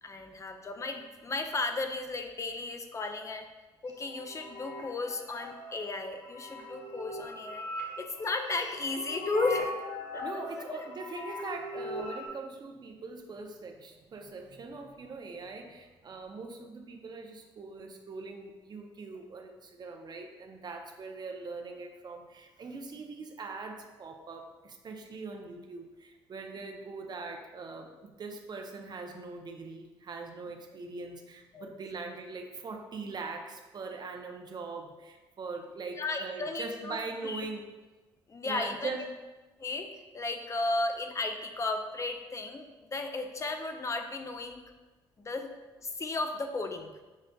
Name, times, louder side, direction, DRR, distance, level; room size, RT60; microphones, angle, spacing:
voice 1, 0.0-3.5 3.8-7.6 8.0-9.7 10.1-10.4 10.7-10.8 31.5-31.8 36.0-37.0 37.2-37.4 38.3-38.9 39.6-39.9 40.1-44.6 45.2-45.5 45.8-46.9, left 3 dB, 30° left, 6 dB, 0.5 m, -34 dB
sound 1, 3.9-12.3, left 1 dB, 85° left, 0.6 m, -40 dB
voice 2, 10.2-37.6 38.4-39.1, right 3 dB, 45° right, 4 dB, 0.5 m, -41 dB
6.3 x 2.4 x 2.2 m, 1.2 s
supercardioid pair, 65°, 10 cm